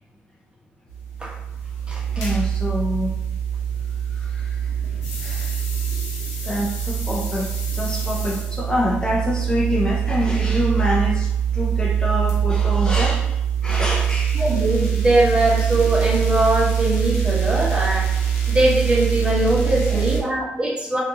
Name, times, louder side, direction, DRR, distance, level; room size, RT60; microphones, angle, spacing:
sound 1, 0.9-20.2, right 8 dB, 80° left, 0.6 m, -23 dB
voice 1, 2.1-3.1 4.1-4.8 5.0-5.5 6.4-14.4 19.9-20.1, equal, 15° left, -3 dB, 0.5 m, -26 dB
voice 2, 14.3-18.1 18.5-21.0, right 1 dB, 20° right, -3 dB, 1.0 m, -21 dB
2.7 x 2.2 x 2.7 m, 0.85 s
hypercardioid pair, 50°, 5 cm